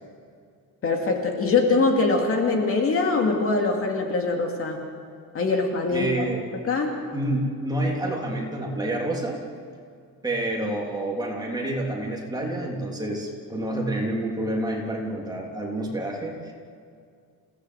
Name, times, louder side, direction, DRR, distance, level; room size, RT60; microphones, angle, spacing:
voice 1, 0.8-4.8 5.3-6.3 6.7-6.9, left 3 dB, 40° left, 2 dB, 2.5 m, -23 dB
voice 2, 5.9-6.4 7.1-9.4 10.2-16.5, right 1 dB, 10° right, -2 dB, 3.3 m, -28 dB
28.0 x 17.5 x 8.1 m, 2.3 s
cardioid pair, 180°, 35 cm